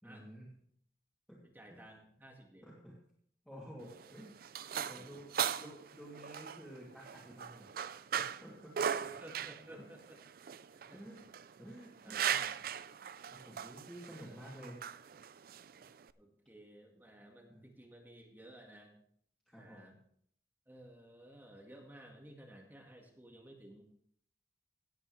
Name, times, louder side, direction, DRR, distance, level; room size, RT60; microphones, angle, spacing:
voice 1, 0.0-0.5 1.3-1.4 1.7-1.8 2.6-2.9 3.4-4.3 4.9-5.3 5.5-8.7 9.7-9.9 10.9-11.2 11.6-12.4 13.1-14.8 17.5-17.7 19.5-19.9, equal, 5° left, -8 dB, 2.6 m, -52 dB
voice 2, 1.4-2.8 3.7-4.2 4.7-5.2 9.0-10.2 10.7-11.0 12.0-12.4 14.1-14.3 16.2-18.9 19.6-19.9 20.7-23.8, right 1 dB, 10° right, 1 dB, 1.7 m, -55 dB
sound 1, 3.8-16.1, right 8 dB, 55° right, 0.4 m, -39 dB
17.0 x 8.7 x 3.2 m, 0.64 s
head